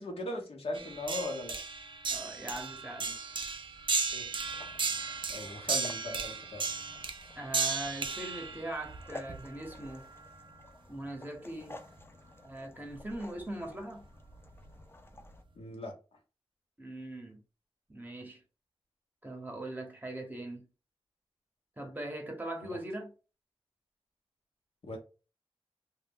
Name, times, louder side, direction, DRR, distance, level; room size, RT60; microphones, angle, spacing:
voice 1, 0.0-1.6 3.0-3.1 4.1-4.3 5.3-6.6 15.6-15.9 24.8-25.0, left 2 dB, 80° left, 0.8 m, -38 dB
sound 1, 0.7-9.9 12.0-12.1 12.9-13.1 14.3-14.7 15.3-15.4, right 4 dB, 55° right, 0.4 m, -35 dB
voice 2, 2.1-3.1 7.4-10.1 10.9-11.8 12.4-14.0 16.8-17.4 17.9-18.4 19.2-20.7 21.8-23.1, right 1 dB, 20° right, 0.8 m, -41 dB
sound 2, 4.4-15.4, left 2 dB, 25° left, 0.4 m, -52 dB
2.2 x 2.0 x 3.5 m
wide cardioid pair, 65°, 10 cm